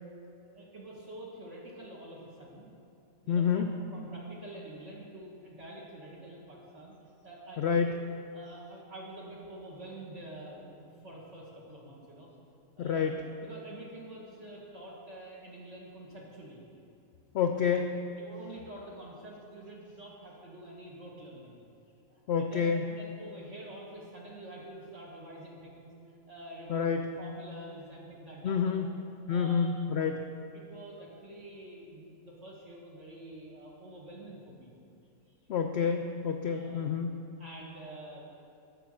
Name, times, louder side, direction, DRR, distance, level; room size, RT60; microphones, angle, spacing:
voice 1, 0.4-2.7 3.2-6.9 7.2-7.9 8.3-12.3 12.8-13.2 13.4-16.6 17.5-17.8 18.2-21.6 22.1-28.8 29.3-29.8 30.3-34.7 36.4-37.0 37.4-38.2, right 1 dB, 55° right, -5 dB, 1.9 m, -47 dB
voice 2, 3.3-3.7 7.6-7.9 12.8-13.2 17.3-18.0 22.3-22.8 26.7-27.0 28.4-28.9 29.3-30.2 35.5-37.1, left 6 dB, 65° left, 5 dB, 0.7 m, -28 dB
11.5 x 6.6 x 6.4 m, 2.6 s
omnidirectional pair, 1.5 m